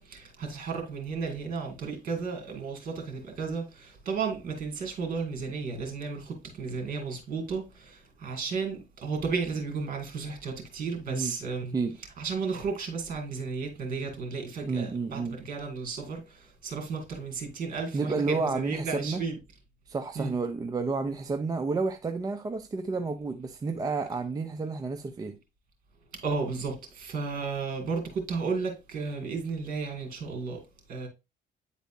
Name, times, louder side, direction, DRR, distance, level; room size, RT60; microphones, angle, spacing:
voice 1, 0.0-11.7 12.2-19.4 20.2-20.3 26.2-30.6 30.9-31.1, right 4 dB, 50° right, 2.2 m, -33 dB
voice 2, 14.7-15.4 17.9-19.2 19.9-25.4, right 4 dB, 20° right, 0.5 m, -30 dB
9.1 x 4.0 x 2.6 m
cardioid pair, 110°, 17 cm